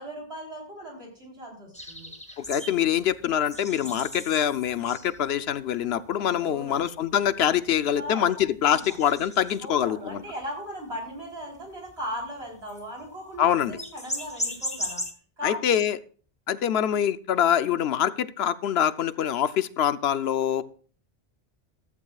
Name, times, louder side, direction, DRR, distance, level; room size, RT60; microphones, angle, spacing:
voice 1, 0.0-2.1 6.4-6.9 8.0-8.3 8.6-9.0 9.6-15.0 15.4-15.8, equal, 85° right, -1 dB, 4.2 m, -38 dB
sound 1, 1.7-5.5 5.9-6.0 6.2-6.3 6.9-8.1 8.5-9.9 10.2-10.5 10.8-11.2 11.6-13.1 13.4-15.1, left 1 dB, 5° left, 1.3 m, -37 dB
voice 2, 2.4-10.2 13.4-13.8 15.4-16.0 16.5-20.6, left 10 dB, 80° left, 14 dB, 0.9 m, -25 dB
14.5 x 13.5 x 2.4 m, 0.42 s
omnidirectional pair, 1.1 m